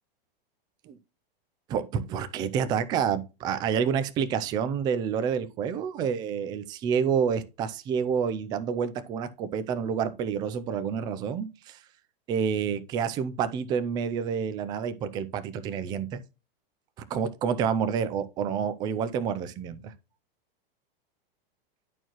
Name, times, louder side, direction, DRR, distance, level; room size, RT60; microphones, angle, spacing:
voice 1, 1.7-11.8 12.3-16.2 17.1-19.9, right 7 dB, 15° right, 0.3 m, -28 dB
10.5 x 4.5 x 2.9 m
supercardioid pair, 150°, 29 cm